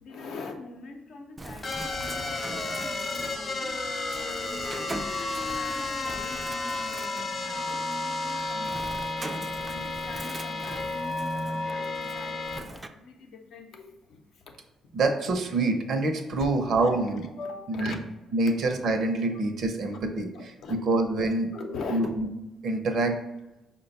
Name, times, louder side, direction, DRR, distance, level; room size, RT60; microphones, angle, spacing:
voice 1, 0.0-3.8 4.2-4.9 5.5-7.2 7.4-9.3 9.7-14.6 16.4-16.5 16.8-17.0 17.4-18.0 19.3-19.4 20.3-20.8 21.5-22.0, left 4 dB, 75° left, 4 dB, 0.6 m, -42 dB
Bird, 1.4-12.9, right 2 dB, 20° right, 0.3 m, -42 dB
sound 1, 1.6-12.6, left 3 dB, 35° left, 0.6 m, -32 dB
voice 2, 14.9-17.3 17.7-17.9 18.3-21.5 21.9-22.3 22.6-23.2, right 2 dB, 65° right, 4 dB, 0.6 m, -26 dB
5.0 x 2.2 x 4.0 m, 0.97 s
cardioid pair, 90°, 0 cm